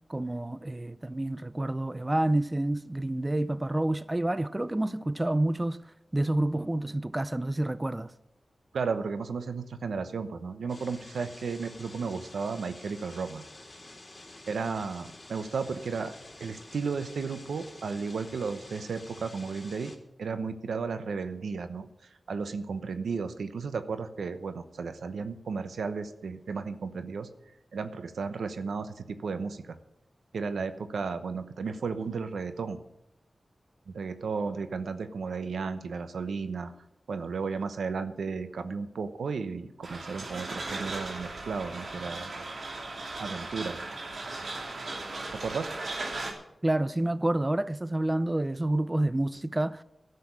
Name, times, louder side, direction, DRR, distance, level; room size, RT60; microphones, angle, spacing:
voice 1, 0.1-8.1 46.6-49.8, right 1 dB, 25° right, 0.6 m, -28 dB
voice 2, 8.7-13.5 14.5-19.9 20.2-27.3 27.7-29.8 30.3-32.8 33.9-36.7 37.1-42.5 43.2-43.8 45.3-45.8, right 5 dB, 90° right, 0.9 m, -34 dB
sound 1, 10.7-20.0, left 2 dB, 35° left, 3.2 m, -49 dB
sound 2, 39.8-46.3, right 2 dB, 70° right, 2.8 m, -37 dB
12.5 x 6.9 x 9.5 m
cardioid pair, 45°, 0 cm